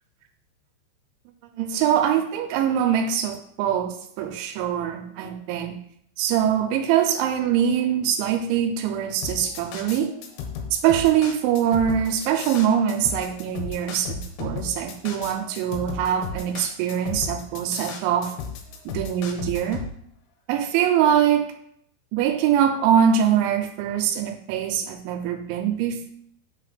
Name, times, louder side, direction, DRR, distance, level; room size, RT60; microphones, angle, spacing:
voice 1, 1.6-5.8 6.2-10.1 10.7-18.4 18.9-19.8 20.5-21.4 22.1-26.1, right 9 dB, 85° right, 5 dB, 3.0 m, -23 dB
sound 1, 9.2-19.9, left 5 dB, 75° left, 2.7 m, -34 dB
6.3 x 4.1 x 5.0 m, 0.69 s
omnidirectional pair, 5.3 m